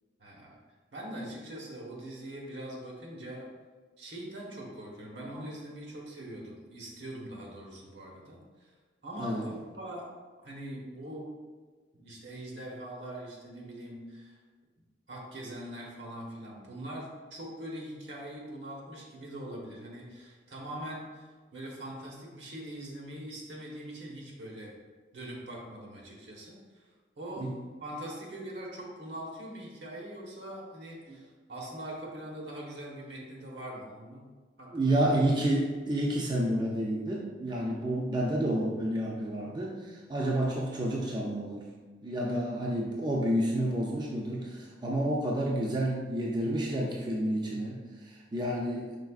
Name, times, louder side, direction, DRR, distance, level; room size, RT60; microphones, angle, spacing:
voice 1, 0.2-0.6 0.9-3.5 4.0-8.7 9.0-10.1 10.4-11.3 11.9-14.4 15.1-24.8 25.1-26.9 27.2-27.5 27.8-34.3 34.6-35.1 42.2-42.4, right 1 dB, 75° right, -3 dB, 1.1 m, -42 dB
voice 2, 34.7-41.7 42.0-49.0, right 1 dB, 25° right, -3 dB, 0.4 m, -30 dB
5.1 x 4.0 x 2.4 m, 1.4 s
head